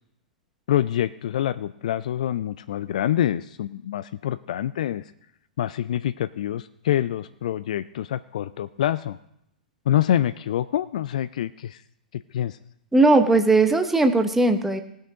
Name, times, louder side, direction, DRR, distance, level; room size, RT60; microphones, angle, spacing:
voice 1, 0.7-5.0 5.6-9.2 9.9-11.8 12.1-12.6, left 11 dB, 55° left, 14 dB, 0.4 m, -26 dB
voice 2, 12.9-14.8, right 2 dB, 5° right, 7 dB, 0.8 m, -18 dB
18.5 x 6.5 x 4.9 m, 0.77 s
figure-of-eight pair, 105°, 5 cm